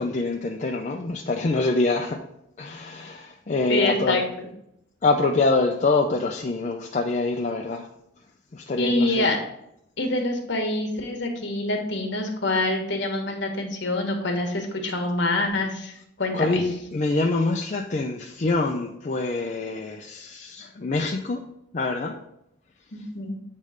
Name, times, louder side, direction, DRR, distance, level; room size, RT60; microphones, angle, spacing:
voice 1, 0.0-2.2 2.6-4.2 5.0-7.9 8.5-9.3 16.3-21.4 21.7-22.2, left 3 dB, 35° left, 1 dB, 0.5 m, -25 dB
voice 2, 3.7-4.5 8.8-9.4 10.0-16.6 22.9-23.4, left 2 dB, 60° left, 3 dB, 1.3 m, -26 dB
8.2 x 3.2 x 4.9 m, 0.79 s
head